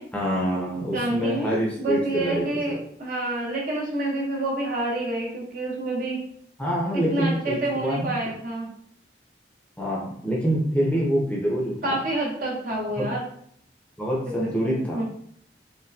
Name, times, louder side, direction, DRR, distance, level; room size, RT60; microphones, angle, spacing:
voice 1, 0.1-2.8 6.6-8.1 9.8-12.0 13.0-13.1 14.0-15.0, equal, 5° left, -4 dB, 0.7 m, -26 dB
voice 2, 0.9-6.2 6.9-8.7 11.8-13.2 14.4-15.0, right 2 dB, 50° right, -2 dB, 0.8 m, -28 dB
4.2 x 2.2 x 2.6 m, 0.64 s
head